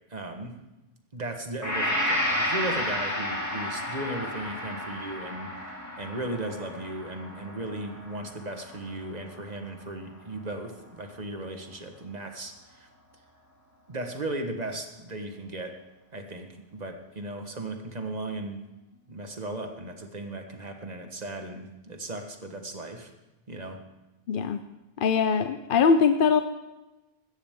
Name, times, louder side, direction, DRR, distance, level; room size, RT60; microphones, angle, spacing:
voice 1, 0.1-0.6 1.1-12.9 13.9-15.7 16.1-18.6 19.1-23.1 23.5-23.8, right 2 dB, 40° right, 5 dB, 1.5 m, -36 dB
Gong, 1.6-9.7, left 1 dB, 15° left, 2.2 m, -32 dB
voice 2, 24.3-24.6 25.0-26.4, left 5 dB, 60° left, 9 dB, 0.7 m, -22 dB
16.5 x 13.0 x 3.7 m, 1.0 s
omnidirectional pair, 1.1 m